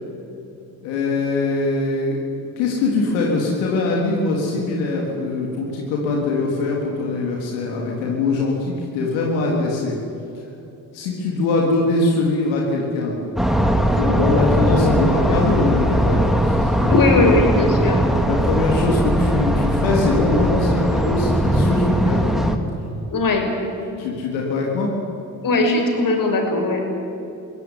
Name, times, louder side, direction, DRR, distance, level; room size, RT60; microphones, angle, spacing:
voice 1, 0.8-2.2 2.6-10.0 10.9-13.2 13.8-16.9 18.3-22.3 24.0-24.9, left 3 dB, 90° left, -2 dB, 3.8 m, -22 dB
sound 1, 13.4-22.6, equal, ahead, 2.8 m, -19 dB
voice 2, 16.9-18.0 23.1-23.5 25.4-26.8, left 2 dB, 50° left, 3 dB, 6.2 m, -18 dB
24.0 x 17.0 x 9.8 m, 2.9 s
supercardioid pair, 65°, 41 cm